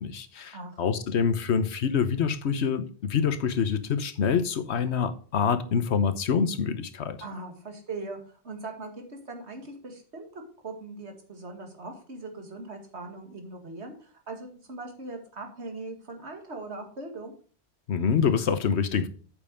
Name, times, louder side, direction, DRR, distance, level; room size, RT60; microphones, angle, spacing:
voice 1, 0.0-7.2 17.9-19.1, left 6 dB, 80° left, 1.2 m, -26 dB
voice 2, 7.2-8.2 8.4-17.3, right 3 dB, 80° right, 2.4 m, -40 dB
8.7 x 6.8 x 5.1 m
omnidirectional pair, 1.1 m